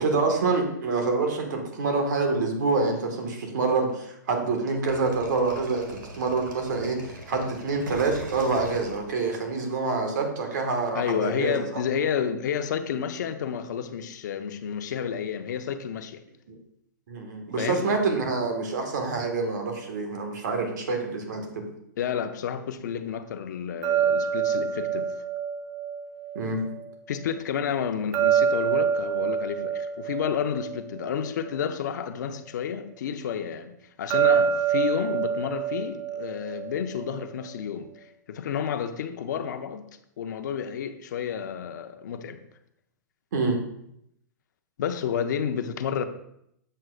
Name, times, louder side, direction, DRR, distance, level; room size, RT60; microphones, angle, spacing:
voice 1, 0.0-11.6 16.5-16.6 17.1-21.6 26.3-26.6 43.3-43.6, right 3 dB, 70° right, 1.7 m, -26 dB
sound 1, 4.9-9.7, right 1 dB, 90° right, 1.8 m, -41 dB
voice 2, 10.9-16.2 17.6-17.9 22.0-25.1 27.1-39.8 40.2-42.4 44.8-46.0, left 8 dB, 65° left, 0.7 m, -30 dB
sound 2, 23.8-26.9 28.1-31.6 34.1-37.2, right 8 dB, 30° right, 0.5 m, -26 dB
7.6 x 7.6 x 2.5 m
hypercardioid pair, 130°, 10 cm